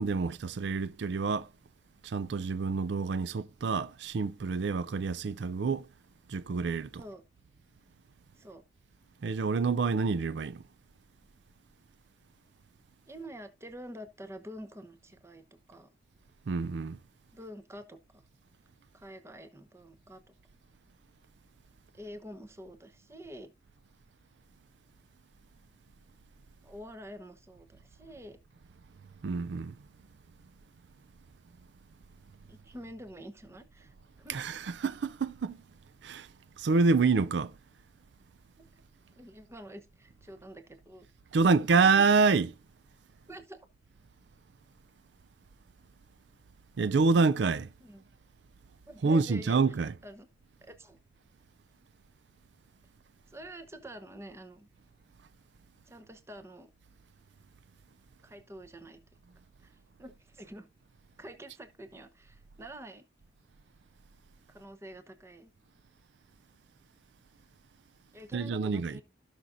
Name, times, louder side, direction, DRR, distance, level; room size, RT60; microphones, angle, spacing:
voice 1, 0.0-1.5 2.0-5.9 6.3-7.1 9.2-10.6 16.5-17.0 29.2-29.7 34.3-35.6 36.0-36.3 36.6-37.5 41.3-42.5 46.8-47.7 49.0-50.0 68.3-69.0, right 4 dB, 70° right, 0.4 m, -27 dB
voice 2, 13.1-15.9 17.3-18.2 18.9-20.2 21.9-23.5 26.6-28.4 32.5-34.4 38.6-38.7 39.1-41.1 41.4-41.9 43.3-43.6 47.8-48.0 48.9-49.6 50.0-50.3 50.6-51.0 53.3-54.7 55.8-56.7 58.2-59.0 59.6-60.7 61.2-63.0 64.5-65.5 68.1-69.0, equal, 15° right, 0.9 m, -47 dB
16.0 x 6.1 x 2.5 m
head